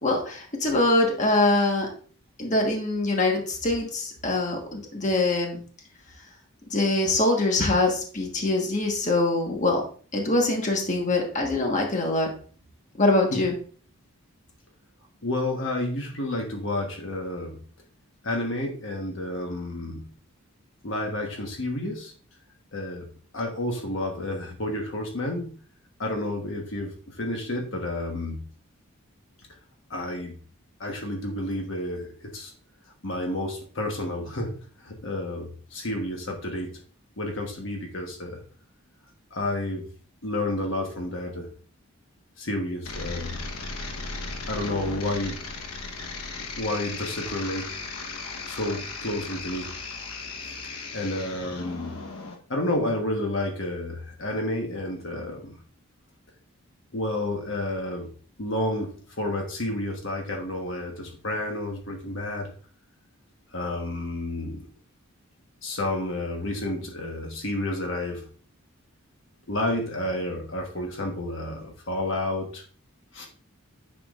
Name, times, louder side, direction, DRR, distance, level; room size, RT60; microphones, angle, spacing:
voice 1, 0.0-1.9 2.4-5.6 6.7-9.8 10.1-12.3 13.0-13.5, left 2 dB, 35° left, 1 dB, 1.4 m, -23 dB
voice 2, 15.2-17.6 18.2-20.1 20.8-22.1 22.7-23.1 23.3-25.5 26.0-28.4 29.9-30.4 30.8-32.5 33.0-36.8 37.2-38.4 39.3-39.8 40.2-41.5 42.4-43.4 44.5-45.4 46.6-47.7 48.5-49.7 50.4-50.6 50.9-51.9 52.5-55.6 56.9-58.1 58.4-62.5 63.5-64.7 65.6-68.3 69.5-72.6 73.1-73.3, left 1 dB, 55° left, 2 dB, 1.2 m, -30 dB
sound 1, 42.8-52.3, left 3 dB, 80° left, 1.2 m, -36 dB
9.4 x 6.1 x 2.5 m, 0.43 s
head